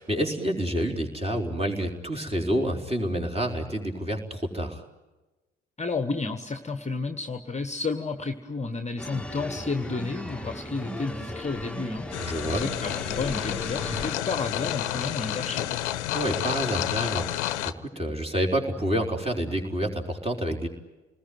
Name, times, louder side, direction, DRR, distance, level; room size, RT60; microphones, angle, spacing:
voice 1, 0.0-4.8 12.2-12.6 16.1-17.5 17.8-20.7, equal, 15° right, 2 dB, 4.3 m, -28 dB
voice 2, 5.8-15.8, left 3 dB, 20° left, 8 dB, 1.5 m, -32 dB
sound 1, 9.0-14.2, left 1 dB, 5° left, 1.7 m, -36 dB
sound 2, 12.1-17.7, left 13 dB, 75° left, 0.9 m, -30 dB
28.5 x 20.5 x 9.4 m, 1.1 s
figure-of-eight pair, 50°, 35 cm